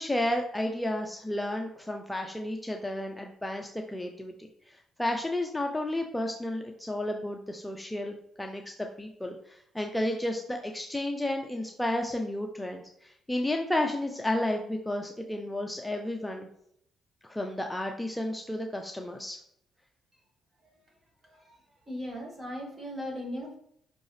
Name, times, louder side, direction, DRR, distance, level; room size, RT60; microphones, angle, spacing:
voice 1, 0.0-4.3 4.7-16.5 17.3-19.4, left 1 dB, 5° left, 3 dB, 0.6 m, -32 dB
voice 2, 21.2-23.6, equal, 30° right, -1 dB, 2.1 m, -38 dB
5.6 x 5.1 x 3.3 m, 0.71 s
cardioid pair, 90°, 0 cm